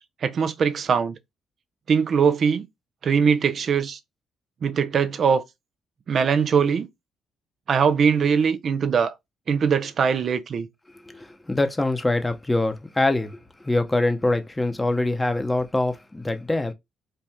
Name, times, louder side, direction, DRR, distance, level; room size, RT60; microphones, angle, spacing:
voice 1, 0.2-1.2 1.9-2.7 3.0-4.0 4.6-5.4 6.1-6.9 7.7-9.1 9.5-10.7, right 6 dB, 55° right, 0.6 m, -21 dB
voice 2, 11.1-13.4 13.6-16.7, left 2 dB, 15° left, 0.8 m, -24 dB
4.4 x 2.5 x 3.5 m
cardioid pair, 90°, 0 cm